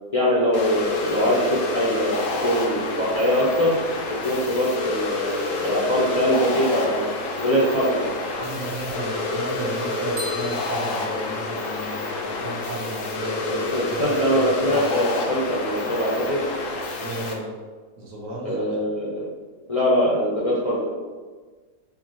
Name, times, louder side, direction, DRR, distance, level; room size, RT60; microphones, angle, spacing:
voice 1, 0.1-3.7 4.1-7.0 7.4-8.1 13.5-16.4 18.4-19.3 19.7-20.9, equal, 40° left, -7 dB, 0.5 m, -22 dB
sound 1, 0.5-17.3, left 2 dB, 65° left, 0.9 m, -28 dB
voice 2, 8.3-14.9 17.0-17.5 18.0-18.7, right 1 dB, 60° right, -4 dB, 1.3 m, -34 dB
sound 2, 10.2-12.1, left 1 dB, 80° right, 1.4 m, -39 dB
4.8 x 2.3 x 3.0 m, 1.4 s
omnidirectional pair, 1.6 m